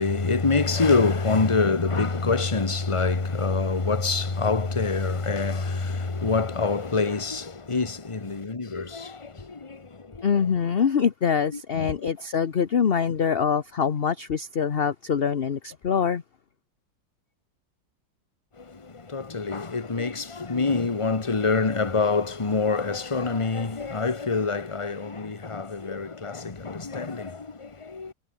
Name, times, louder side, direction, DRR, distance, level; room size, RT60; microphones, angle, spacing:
voice 1, 0.0-10.4 11.5-12.1 18.6-28.1, left 4 dB, 20° left, 1.3 m, -26 dB
voice 2, 10.2-16.2, left 7 dB, 40° left, 1.0 m, -24 dB
omnidirectional pair, 2.0 m